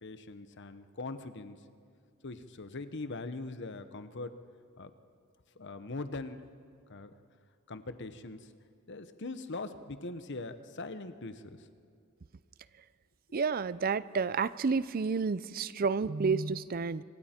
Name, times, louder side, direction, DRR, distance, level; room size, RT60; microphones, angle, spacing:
voice 1, 0.0-1.6 2.2-4.3 4.8-4.9 5.6-6.4 6.9-7.1 7.7-8.5 8.9-11.7, left 3 dB, 55° left, 10 dB, 1.0 m, -41 dB
voice 2, 13.3-17.0, right 5 dB, 40° right, 17 dB, 0.5 m, -30 dB
26.0 x 25.0 x 4.4 m, 2.3 s
head